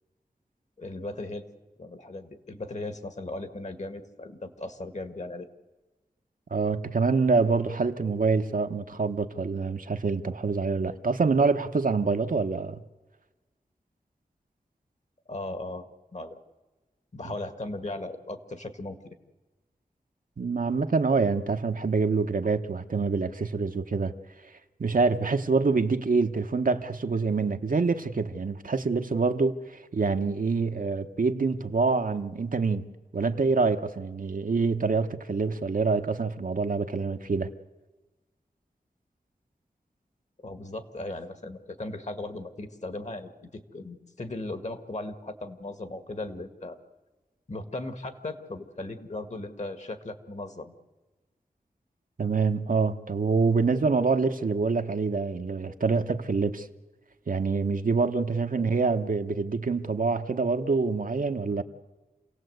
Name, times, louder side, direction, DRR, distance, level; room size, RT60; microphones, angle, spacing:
voice 1, 0.8-1.4 1.8-5.5 15.3-16.4 17.1-19.2 40.4-46.8 47.5-50.7 58.6-58.7, left 2 dB, 50° left, 1.8 m, -37 dB
voice 2, 6.5-12.8 20.4-24.1 24.8-32.9 33.1-37.5 52.2-56.7 57.3-61.6, right 4 dB, 65° right, 1.0 m, -26 dB
27.5 x 17.0 x 8.0 m
wide cardioid pair, 70°, 15 cm